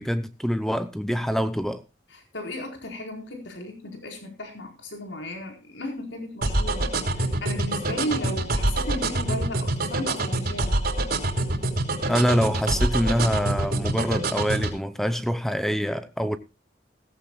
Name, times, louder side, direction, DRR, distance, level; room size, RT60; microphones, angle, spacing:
voice 1, 0.0-1.8 12.0-16.4, equal, ahead, 0.8 m, -25 dB
voice 2, 2.1-6.9 7.2-10.7, left 1 dB, 85° left, 4.6 m, -35 dB
sound 1, 6.4-14.7, right 2 dB, 55° right, 3.3 m, -25 dB
17.0 x 15.0 x 2.3 m
head